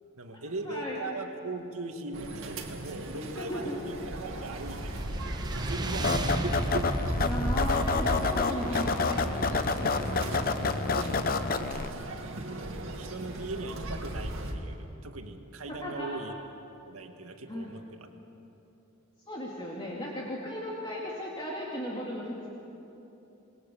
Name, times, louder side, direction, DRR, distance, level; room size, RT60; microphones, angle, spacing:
voice 1, 0.2-6.5 9.7-10.4 12.6-16.4 16.9-18.1, right 2 dB, 90° right, 4 dB, 1.9 m, -40 dB
voice 2, 0.7-1.0 3.1-3.8 7.2-9.0 9.7-10.2 15.7-16.1 17.5-17.7 19.3-22.5, equal, 25° left, -4 dB, 2.5 m, -36 dB
sound 1, 2.1-14.5, right 1 dB, 65° right, 2.3 m, -37 dB
sound 2, 4.3-9.7, right 1 dB, 20° right, 1.0 m, -35 dB
sound 3, 6.0-11.9, left 4 dB, 45° left, 0.9 m, -28 dB
27.0 x 21.0 x 6.9 m, 3.0 s
head